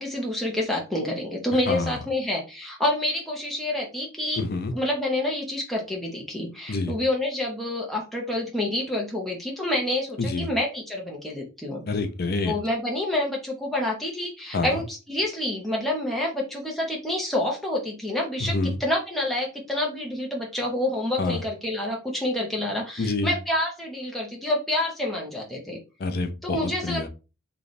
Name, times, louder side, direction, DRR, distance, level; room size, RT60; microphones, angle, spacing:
voice 1, 0.0-4.4 4.7-11.8 12.5-25.8 26.4-27.1, left 1 dB, ahead, -2 dB, 0.7 m, -28 dB
voice 2, 1.7-2.0 4.4-4.7 6.7-7.0 10.2-10.5 11.9-12.6 14.5-14.8 18.4-18.8 21.2-21.4 23.0-23.3 26.0-27.1, left 3 dB, 45° left, 7 dB, 0.4 m, -27 dB
3.2 x 2.3 x 4.0 m, 0.30 s
head